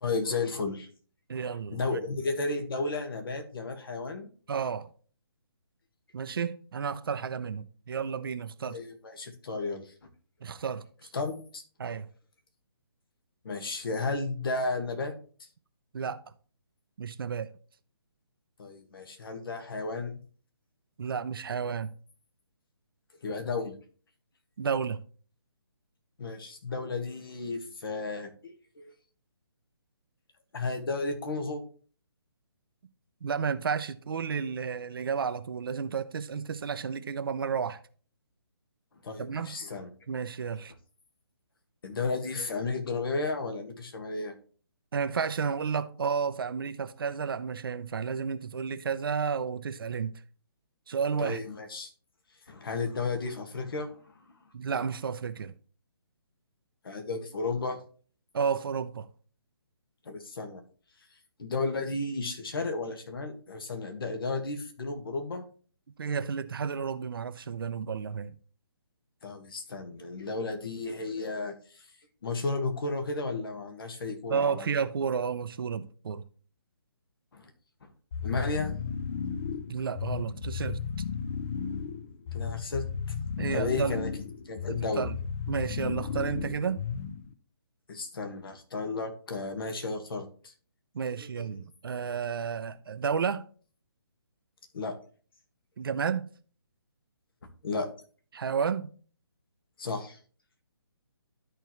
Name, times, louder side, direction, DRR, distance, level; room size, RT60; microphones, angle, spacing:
voice 1, 0.0-0.9 1.3-4.3 8.7-9.9 11.1-11.6 13.4-15.1 18.6-20.2 23.2-23.7 26.2-28.9 30.5-31.6 39.0-39.9 41.8-44.3 51.2-51.9 52.5-54.1 56.8-57.8 60.0-60.6 61.4-65.4 69.2-71.9 72.2-74.7 77.3-77.5 78.2-78.8 82.3-82.8 83.5-84.1 84.4-85.1 87.9-90.5 91.1-91.5 94.7-94.9 97.6-97.9 99.8-100.2, left 3 dB, 60° left, 1.7 m, -33 dB
voice 2, 1.3-2.0 4.5-4.9 6.1-8.8 10.4-10.8 11.8-12.1 15.9-16.2 17.0-17.5 21.0-21.9 24.6-25.0 33.2-37.8 39.2-39.6 40.1-40.7 44.9-50.1 50.9-51.4 54.5-55.5 58.3-59.1 66.0-68.3 74.3-76.2 79.7-80.8 83.4-84.0 85.0-85.1 85.5-86.8 90.9-93.4 95.8-96.3 98.3-98.9, right 6 dB, 60° right, 0.7 m, -31 dB
sound 1, 78.1-87.3, left 6 dB, 35° left, 0.6 m, -34 dB
12.0 x 4.5 x 3.1 m
hypercardioid pair, 160°, 13 cm